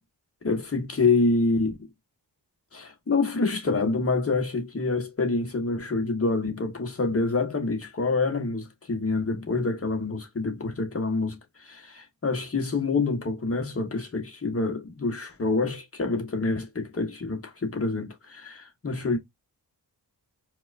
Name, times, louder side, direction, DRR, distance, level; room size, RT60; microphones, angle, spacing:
voice 1, 0.4-1.7 2.7-19.2, left 3 dB, 35° left, 1.1 m, -27 dB
4.6 x 2.3 x 2.5 m
wide cardioid pair, 110°, 41 cm